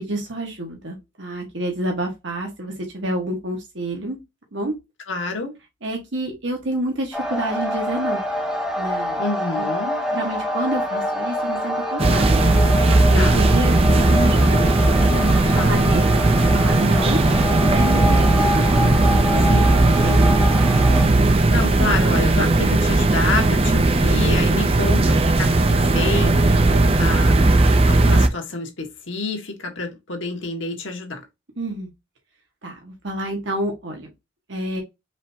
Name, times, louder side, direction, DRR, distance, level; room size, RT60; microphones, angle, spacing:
voice 1, 0.0-4.2 4.5-4.7 5.8-8.2 8.8-9.2 10.1-12.4 12.9-16.0 16.5-17.2 17.7-18.2 18.5-19.5 20.0-20.2 31.6-31.9 32.6-34.1 34.5-34.8, right 1 dB, 70° right, 1.5 m, -28 dB
voice 2, 5.1-5.5 9.2-10.0 13.1-13.4 15.5-15.9 19.4-19.6 21.5-31.2, left 3 dB, 85° left, 1.5 m, -28 dB
sound 1, 7.1-21.1, left 1 dB, 5° right, 1.3 m, -26 dB
sound 2, 12.0-28.3, right 2 dB, 30° right, 0.5 m, -17 dB
4.9 x 3.4 x 2.8 m
head